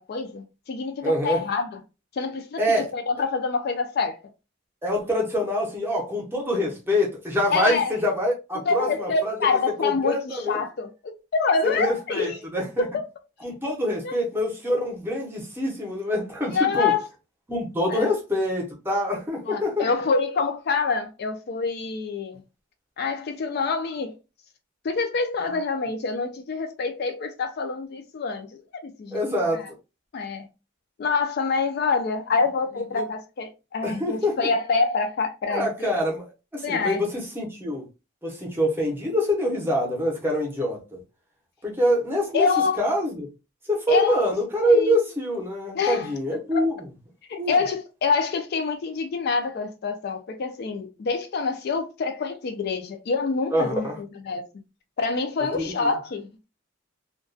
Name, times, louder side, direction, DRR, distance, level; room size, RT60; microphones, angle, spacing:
voice 1, 0.0-1.7 2.1-4.2 7.5-7.9 8.7-10.9 11.3-12.4 12.8-13.0 13.8-14.1 16.5-17.0 17.9-18.1 19.5-22.4 23.0-24.1 24.8-29.7 30.1-30.5 31.0-35.9 36.6-37.0 42.3-42.8 43.9-44.2 44.6-45.0 45.7-46.1 46.5-46.6 47.3-53.9 54.3-54.4 55.0-56.5, left 4 dB, 50° left, 0.3 m, -26 dB
voice 2, 1.0-1.4 2.6-2.9 4.8-10.6 11.7-12.9 13.4-16.9 17.5-19.9 29.1-29.6 32.9-33.1 33.8-34.4 35.5-36.3 36.5-37.9 38.2-41.0 41.6-43.3 43.7-46.8 47.4-47.6 53.5-54.0 55.5-55.9, equal, 10° right, 0.7 m, -25 dB
2.3 x 2.2 x 2.5 m
head